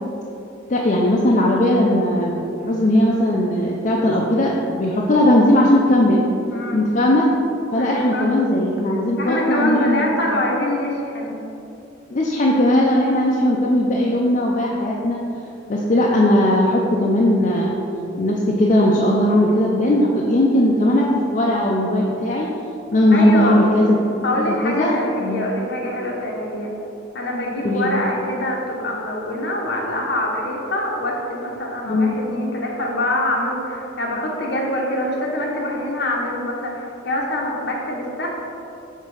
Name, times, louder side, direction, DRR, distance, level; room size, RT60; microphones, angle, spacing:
voice 1, 0.7-6.2 6.7-7.3 7.7-10.1 12.1-15.2 15.7-17.8 18.2-22.5 22.9-25.4 27.6-27.9 31.9-32.2, left 1 dB, 40° left, -3 dB, 0.5 m, -18 dB
voice 2, 6.5-6.8 7.8-8.3 9.2-11.3 23.1-23.6 24.2-26.7 27.1-38.5, left 1 dB, 60° left, -2 dB, 1.1 m, -24 dB
6.5 x 4.0 x 4.9 m, 2.9 s
head